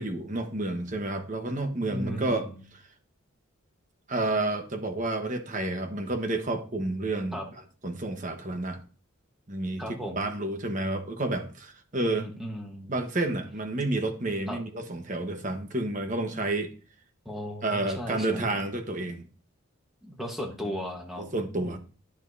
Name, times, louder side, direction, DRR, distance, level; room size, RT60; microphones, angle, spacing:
voice 1, 0.0-2.5 2.7-2.8 4.1-7.4 7.8-8.8 9.5-12.3 12.9-16.7 17.6-19.2 21.2-21.8, right 2 dB, 35° right, 1.1 m, -30 dB
voice 2, 1.9-2.5 7.3-7.4 9.8-10.3 12.0-12.9 14.5-14.6 17.2-18.6 20.0-21.3 21.6-21.8, equal, ahead, 1.2 m, -36 dB
10.5 x 7.2 x 2.7 m
head